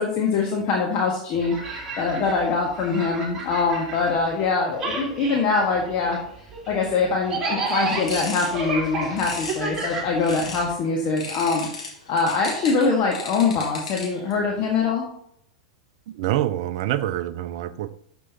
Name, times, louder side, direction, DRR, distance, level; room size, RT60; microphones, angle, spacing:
voice 1, 0.0-6.2 6.7-11.7 12.1-15.1, left 4 dB, 35° left, 1.6 m, -23 dB
sound 1, 1.3-4.5 4.7-10.7, right 3 dB, 15° right, 3.1 m, -31 dB
sound 2, 7.7-10.7 11.2-14.3, left 3 dB, 75° left, 2.8 m, -36 dB
voice 2, 16.1-17.9, right 13 dB, 50° right, 0.5 m, -26 dB
12.5 x 6.1 x 2.9 m
figure-of-eight pair, 90°, 4 cm